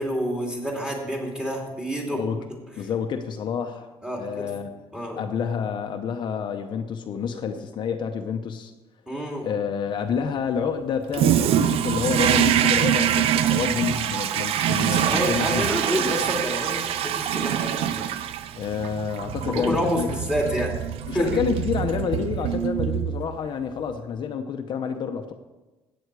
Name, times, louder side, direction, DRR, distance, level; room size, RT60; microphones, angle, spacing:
voice 1, 0.0-2.2 4.0-4.5 4.9-5.2 9.1-9.5 14.9-18.0 19.5-20.7 21.1-21.4, equal, 10° right, -1 dB, 2.8 m, -28 dB
voice 2, 2.1-2.4 2.8-3.9 4.2-4.7 5.2-8.7 9.4-15.6 18.6-20.1 21.1-25.3, left 6 dB, 50° left, 5 dB, 0.8 m, -28 dB
Toilet flush, 11.1-23.5, right 10 dB, 75° right, 0.6 m, -24 dB
15.0 x 8.8 x 4.8 m, 1.1 s
cardioid pair, 140°, 10 cm